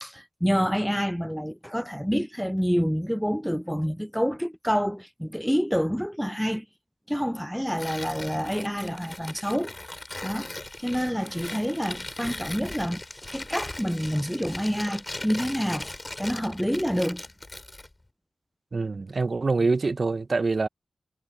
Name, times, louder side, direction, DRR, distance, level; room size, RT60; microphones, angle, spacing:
voice 1, 0.0-6.7 7.1-9.7 10.2-10.5 10.8-13.0 13.3-15.8 16.2-17.2, equal, ahead, 0.3 m, -27 dB
Tearing, 7.7-17.9, left 2 dB, 30° left, 5.8 m, -39 dB
voice 2, 18.7-20.7, right 3 dB, 55° right, 0.7 m, -25 dB
cardioid pair, 45°, 0 cm